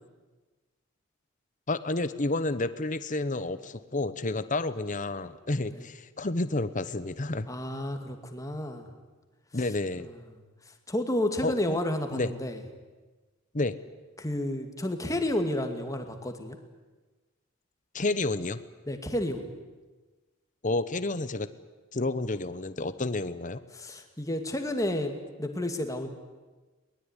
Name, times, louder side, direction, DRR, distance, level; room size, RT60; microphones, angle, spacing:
voice 1, 1.7-7.5 9.5-10.1 11.4-11.8 12.1-12.3 13.5-13.7 17.9-18.6 20.6-21.5 21.9-23.6, left 2 dB, 35° left, 12 dB, 1.0 m, -30 dB
voice 2, 7.5-8.9 10.0-10.1 10.9-12.6 14.2-16.6 18.9-19.5 23.7-25.1 25.4-26.1, left 1 dB, 15° left, 5 dB, 2.3 m, -31 dB
22.5 x 20.0 x 9.9 m, 1.3 s
head